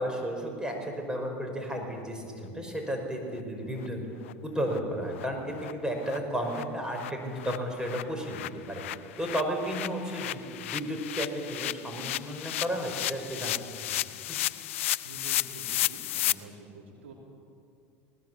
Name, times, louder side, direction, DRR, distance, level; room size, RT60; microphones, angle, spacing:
voice 1, 0.0-4.0 4.4-8.8 9.2-10.4 10.7-13.5 13.9-14.0 14.3-14.4, equal, 10° right, 2 dB, 5.4 m, -33 dB
sound 1, 3.4-3.5 3.8-3.9 4.2-4.3 4.7-4.8 5.1-5.3 5.6-5.7 6.0-6.2 6.4-16.3, left 14 dB, 85° left, 0.5 m, -33 dB
voice 2, 15.0-17.1, right 3 dB, 85° right, -2 dB, 4.9 m, -47 dB
19.5 x 19.5 x 8.3 m, 2.4 s
hypercardioid pair, 90°, 7 cm